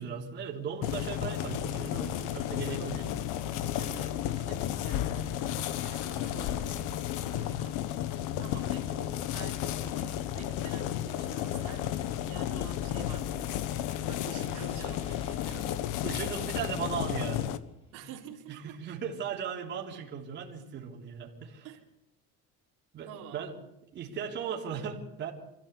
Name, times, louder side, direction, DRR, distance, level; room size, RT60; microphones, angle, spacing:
voice 1, 0.0-3.0 16.0-17.5 18.5-21.7 22.9-23.5 23.9-25.3, right 7 dB, 35° right, -2 dB, 3.6 m, -37 dB
sound 1, 0.8-17.6, left 12 dB, 75° left, 1.5 m, -33 dB
voice 2, 2.1-3.2 3.6-15.8 17.9-18.8 21.6-21.8 23.1-23.5, right 7 dB, 75° right, 0 dB, 4.0 m, -48 dB
sound 2, 14.4-18.5, left 3 dB, 20° left, 4.2 m, -53 dB
26.5 x 16.5 x 8.3 m, 0.88 s
cardioid pair, 175°, 31 cm